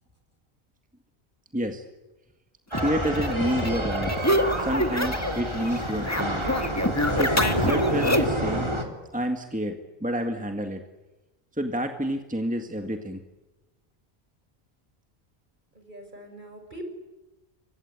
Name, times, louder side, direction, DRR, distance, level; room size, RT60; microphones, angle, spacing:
voice 1, 1.5-1.8 2.8-4.1 4.6-6.4 7.2-8.7 9.1-10.8 11.6-13.2, equal, 5° right, 5 dB, 1.9 m, -29 dB
sound 1, 2.7-5.4 5.7-8.4, left 1 dB, 15° left, 1.9 m, -27 dB
sound 2, 2.7-8.9, equal, 25° right, 3.5 m, -28 dB
voice 2, 15.7-16.8, right 1 dB, 45° right, 5 dB, 5.9 m, -43 dB
29.0 x 24.0 x 8.5 m, 1.1 s
omnidirectional pair, 1.1 m